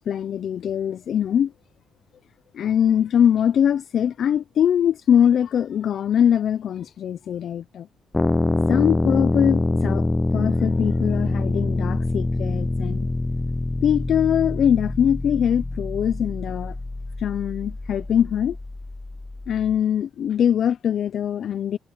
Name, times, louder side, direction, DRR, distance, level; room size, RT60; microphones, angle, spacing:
voice 1, 0.0-1.5 2.5-7.9 8.7-10.1 10.3-13.1 13.8-16.7 17.2-18.6 19.5-21.8, left 9 dB, 65° left, 0.6 m, -22 dB
sound 1, 8.1-19.8, left 2 dB, 15° left, 0.6 m, -25 dB
cardioid pair, 90°, 0 cm